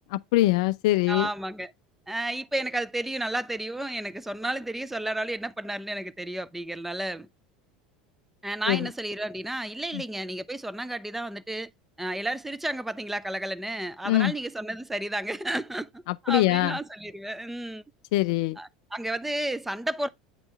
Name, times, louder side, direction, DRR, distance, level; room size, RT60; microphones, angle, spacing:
voice 1, 0.1-1.3 8.7-8.9 9.9-10.0 14.1-14.3 16.1-16.8 18.1-18.6, left 17 dB, 55° left, 0.3 m, -23 dB
voice 2, 1.1-1.7 2.1-7.3 8.4-11.7 12.0-17.8 18.6-20.1, right 1 dB, 5° right, 0.6 m, -32 dB
8.8 x 4.4 x 3.3 m
figure-of-eight pair, 75°, 4 cm